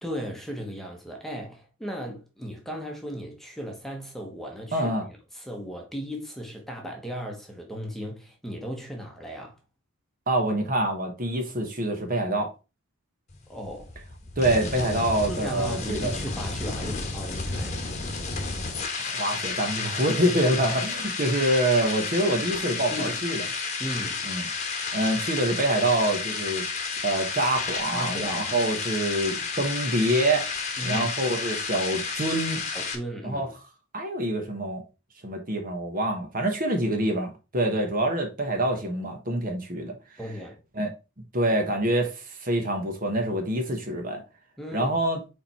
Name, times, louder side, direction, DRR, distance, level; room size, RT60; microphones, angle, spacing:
voice 1, 0.0-4.9 5.3-9.6 13.5-13.9 15.3-17.9 22.9-23.2 23.8-24.3 27.9-28.6 30.8-31.1 32.7-33.5 40.2-40.6 44.6-45.0, equal, ahead, 1.1 m, -36 dB
voice 2, 4.7-5.0 10.3-12.5 14.4-16.1 19.0-23.4 24.2-24.5 24.9-26.6 27.0-30.5 30.8-32.6 33.2-33.5 33.9-34.8 35.2-40.0 40.8-40.9 41.3-44.2 44.7-45.2, right 1 dB, 40° right, 1.2 m, -26 dB
sound 1, 13.3-33.0, left 4 dB, 30° left, 1.2 m, -31 dB
5.1 x 4.4 x 4.3 m
head